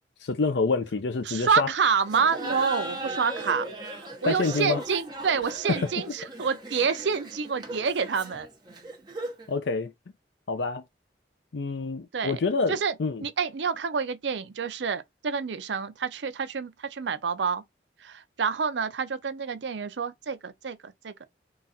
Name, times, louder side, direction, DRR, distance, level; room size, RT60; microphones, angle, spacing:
voice 1, 0.2-1.7 4.2-4.8 5.8-5.9 9.5-9.9 10.5-10.8 11.5-13.2, left 4 dB, 75° left, 0.5 m, -27 dB
voice 2, 1.2-8.5 12.1-12.4 12.7-12.9 13.2-17.6 18.0-21.1, right 6 dB, 80° right, 0.5 m, -28 dB
Laughter, 2.0-9.5, right 2 dB, 25° right, 1.1 m, -37 dB
3.9 x 2.4 x 4.1 m
head